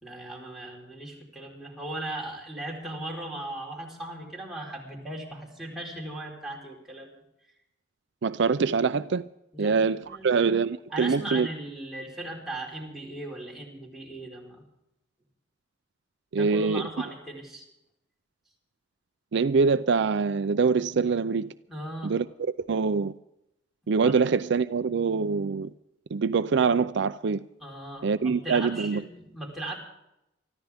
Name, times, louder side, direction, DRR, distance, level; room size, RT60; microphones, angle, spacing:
voice 1, 0.0-7.2 9.5-10.4 10.9-14.6 16.4-17.7 21.7-22.2 24.0-24.2 27.6-29.8, right 1 dB, ahead, 4.3 m, -38 dB
voice 2, 8.2-9.2 9.6-11.5 16.3-16.9 19.3-21.5 22.0-22.3 22.6-23.1 23.9-25.7 26.1-27.4 28.0-29.0, right 5 dB, 65° right, 0.5 m, -24 dB
24.5 x 14.0 x 3.5 m
head